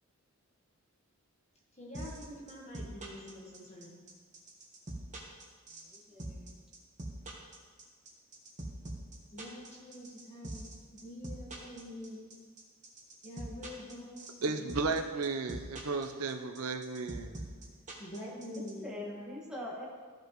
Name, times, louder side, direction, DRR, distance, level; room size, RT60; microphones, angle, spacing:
voice 1, 1.7-4.0 9.3-12.3 13.2-14.6 18.0-19.4, left 1 dB, 30° left, -4 dB, 1.5 m, -46 dB
sound 1, 1.9-18.7, right 2 dB, 35° right, 1.2 m, -42 dB
voice 2, 5.8-6.6 18.8-19.9, left 1 dB, 5° right, -5 dB, 1.6 m, -43 dB
voice 3, 14.4-17.3, right 4 dB, 75° right, 7 dB, 0.7 m, -34 dB
14.0 x 5.2 x 3.1 m, 1.5 s
head